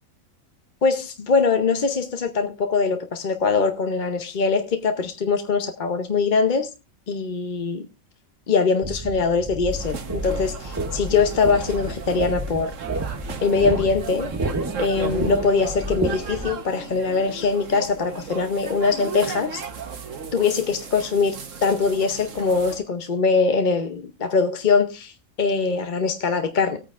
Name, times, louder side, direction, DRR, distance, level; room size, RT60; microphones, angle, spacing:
voice 1, 0.8-6.7 7.1-7.8 8.5-12.7 13.4-14.3 14.8-19.6 20.3-26.8, left 4 dB, 40° left, 0.8 m, -22 dB
sound 1, 8.8-16.5, right 1 dB, 20° right, 0.5 m, -31 dB
sound 2, 9.7-22.8, right 5 dB, 65° right, 1.5 m, -35 dB
18.5 x 9.0 x 2.5 m
omnidirectional pair, 1.4 m